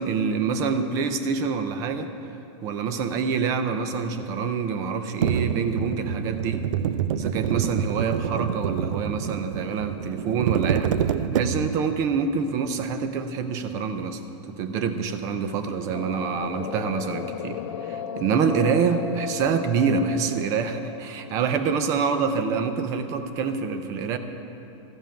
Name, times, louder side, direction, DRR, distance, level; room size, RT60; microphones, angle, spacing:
voice 1, 0.0-2.1 2.6-6.7 7.1-11.0 11.3-14.2 14.5-24.2, right 5 dB, 20° right, 9 dB, 0.5 m, -26 dB
sound 1, 5.2-11.9, right 8 dB, 85° right, 0.5 m, -27 dB
sound 2, 15.9-21.8, left 8 dB, 65° left, 0.5 m, -36 dB
14.0 x 5.4 x 8.9 m, 2.8 s
supercardioid pair, 175°, 16 cm